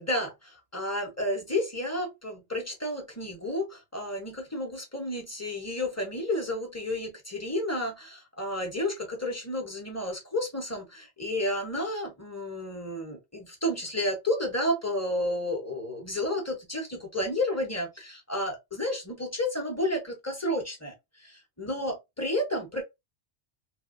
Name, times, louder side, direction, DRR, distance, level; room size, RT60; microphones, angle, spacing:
voice 1, 0.0-22.8, left 1 dB, 15° left, 1.0 m, -31 dB
3.5 x 2.6 x 2.6 m
omnidirectional pair, 1.1 m